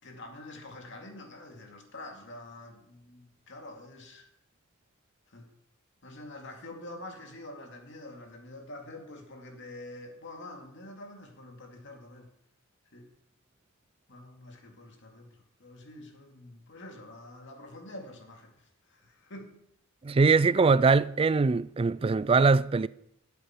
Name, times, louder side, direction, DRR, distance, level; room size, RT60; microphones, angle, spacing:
voice 1, 0.0-4.3 5.3-5.5 6.0-12.3 12.9-13.1 14.1-19.6, left 1 dB, 60° left, 2.3 m, -46 dB
voice 2, 20.0-22.9, right 4 dB, 25° right, 0.3 m, -22 dB
13.5 x 8.4 x 5.8 m
head